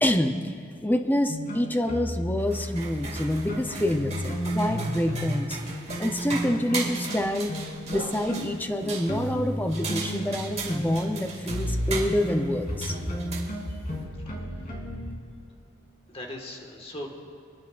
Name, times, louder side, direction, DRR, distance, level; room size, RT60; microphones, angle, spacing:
voice 1, 0.0-0.5 0.8-5.6 6.0-7.5 7.9-13.0, left 1 dB, 10° left, 6 dB, 0.6 m, -27 dB
sound 1, 1.3-5.4 5.7-15.2, equal, 45° left, 2.6 m, -33 dB
sound 2, 2.4-14.0, right 4 dB, 35° right, 2.2 m, -38 dB
voice 2, 14.2-14.8 16.1-17.1, left 1 dB, 30° left, 1 dB, 1.6 m, -40 dB
28.5 x 10.5 x 2.5 m, 2.6 s
head